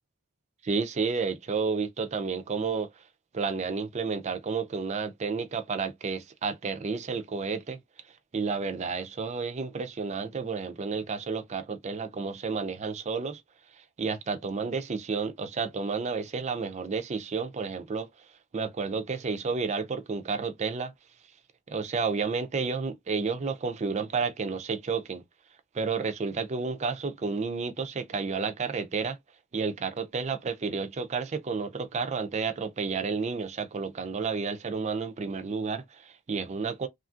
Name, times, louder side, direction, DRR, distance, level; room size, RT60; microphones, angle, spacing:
voice 1, 0.6-2.9 3.3-7.8 8.3-13.4 14.0-18.1 18.5-20.9 21.7-25.2 25.7-29.2 29.5-36.9, right 5 dB, 30° right, 0.4 m, -31 dB
3.1 x 2.4 x 2.4 m
head